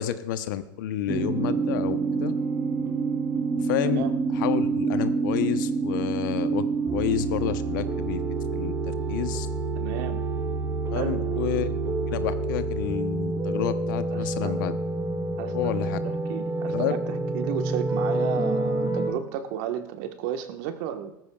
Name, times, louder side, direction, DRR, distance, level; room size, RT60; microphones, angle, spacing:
voice 1, 0.0-2.3 3.6-4.0 4.3-6.7 6.9-8.2 8.5-9.5 10.9-14.7 15.5-16.0 16.7-16.9, left 12 dB, 65° left, 12 dB, 0.8 m, -30 dB
sound 1, 1.1-19.1, right 3 dB, 25° right, 2.9 m, -27 dB
voice 2, 9.8-10.2 10.9-11.2 14.1-14.7 15.4-17.0 17.3-21.1, right 10 dB, 60° right, 7 dB, 1.3 m, -33 dB
18.0 x 14.0 x 2.4 m, 0.86 s
hypercardioid pair, 95°, 11 cm